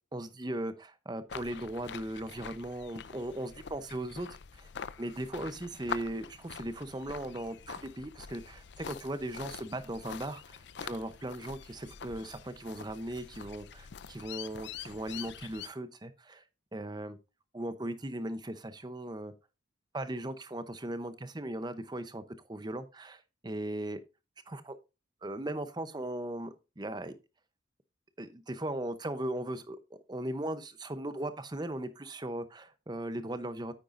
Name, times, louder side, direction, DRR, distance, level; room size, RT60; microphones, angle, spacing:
voice 1, 0.1-4.7 5.0-16.4 16.7-17.2 17.5-19.3 19.9-22.2 22.5-24.0 24.5-24.8 25.2-27.1 28.2-33.7, right 1 dB, 20° right, 0.8 m, -38 dB
sound 1, 1.3-15.7, left 7 dB, 65° left, 0.5 m, -45 dB
9.1 x 9.1 x 2.6 m
head